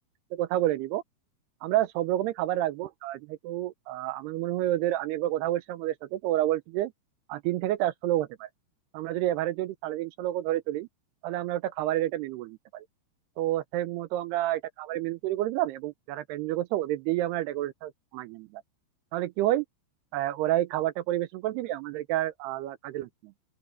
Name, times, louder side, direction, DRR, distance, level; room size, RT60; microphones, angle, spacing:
voice 1, 0.3-1.0 1.6-6.9 7.3-8.5 8.9-10.9 11.2-12.9 13.4-18.6 19.1-19.7 20.1-23.1, right 14 dB, 80° right, 2.5 m, -29 dB
open air
omnidirectional pair, 5.3 m